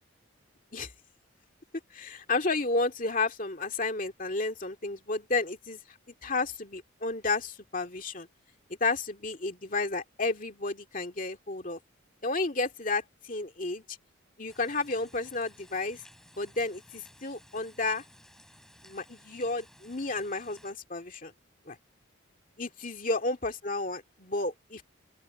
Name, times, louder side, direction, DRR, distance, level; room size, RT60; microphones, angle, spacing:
voice 1, 1.9-5.8 6.2-8.3 8.8-11.8 12.2-14.0 14.4-16.0 16.4-18.0 18.8-21.3 21.7-21.8 22.6-24.8, left 3 dB, 40° left, 2.4 m, -32 dB
sound 1, 14.5-20.7, equal, ahead, 6.4 m, -57 dB
open air
head